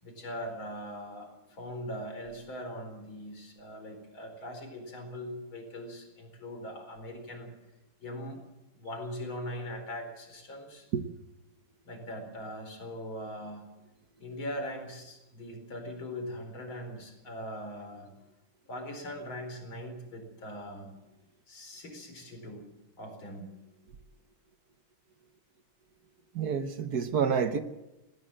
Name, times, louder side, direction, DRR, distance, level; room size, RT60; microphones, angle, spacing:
voice 1, 0.0-7.5 8.0-8.4 8.7-10.9 11.8-13.7 14.2-18.1 18.6-20.9 21.5-22.6 23.0-23.4, equal, 65° left, 5.1 m, -41 dB
voice 2, 26.3-27.6, right 6 dB, 55° right, 1.3 m, -28 dB
18.5 x 18.5 x 7.6 m
omnidirectional pair, 2.4 m